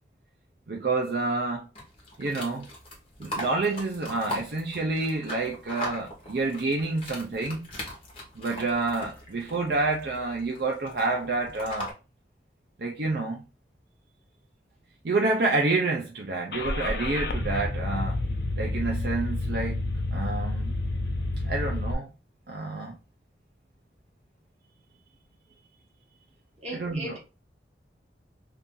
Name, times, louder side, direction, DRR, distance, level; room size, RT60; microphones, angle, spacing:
voice 1, 0.7-1.7 2.2-2.7 3.2-7.6 8.4-11.9 12.8-13.5 15.0-18.2 18.6-19.8 20.1-20.7 21.4-22.1 22.5-23.0 26.7-27.2, right 3 dB, 60° right, 0.5 m, -28 dB
sound 1, 1.7-11.9, left 1 dB, 30° left, 1.2 m, -40 dB
Car / Engine starting, 16.5-21.9, left 2 dB, 65° left, 0.5 m, -29 dB
voice 2, 26.6-27.2, right 1 dB, 35° right, 1.3 m, -37 dB
2.7 x 2.6 x 3.6 m
head